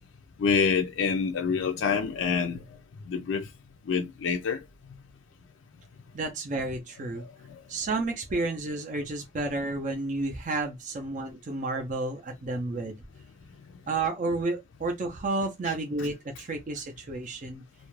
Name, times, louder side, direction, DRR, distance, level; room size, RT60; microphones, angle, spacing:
voice 1, 0.4-2.7 3.1-3.5 3.9-4.6 7.2-7.6, left 6 dB, 70° left, 0.4 m, -27 dB
voice 2, 6.1-7.2 7.7-13.0 13.9-17.6, right 2 dB, 40° right, 0.4 m, -31 dB
2.4 x 2.1 x 3.0 m
head